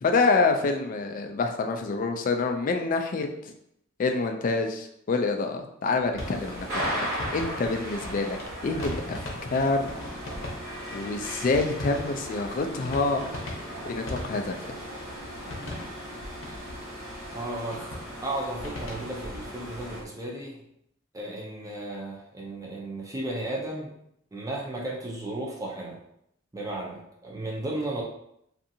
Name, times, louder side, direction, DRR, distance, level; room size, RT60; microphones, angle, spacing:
voice 1, 0.0-3.3 4.0-6.7 7.0-9.2 9.5-9.8 10.9-13.3 13.8-14.6, left 3 dB, 40° left, 5 dB, 0.3 m, -26 dB
sound 1, 6.0-20.0, left 1 dB, 75° left, 0.7 m, -40 dB
sound 2, 6.2-20.0, equal, 45° right, 1.2 m, -37 dB
voice 2, 17.3-20.6 21.1-23.9 24.3-26.0 26.5-28.0, right 1 dB, 15° right, -3 dB, 0.5 m, -34 dB
2.6 x 2.4 x 2.7 m, 0.75 s
head